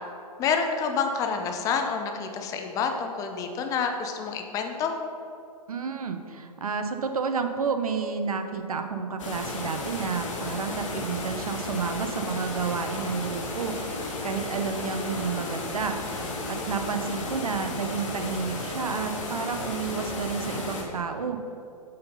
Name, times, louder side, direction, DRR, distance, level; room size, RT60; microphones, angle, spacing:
voice 1, 0.4-4.9, left 5 dB, 15° left, 4 dB, 0.6 m, -28 dB
voice 2, 5.7-13.8 14.2-16.0 16.5-21.4, right 5 dB, 65° right, 7 dB, 0.8 m, -30 dB
sound 1, 9.2-20.8, left 2 dB, 50° left, 1.5 m, -33 dB
7.8 x 5.6 x 5.3 m, 2.6 s
figure-of-eight pair, 115°, 20 cm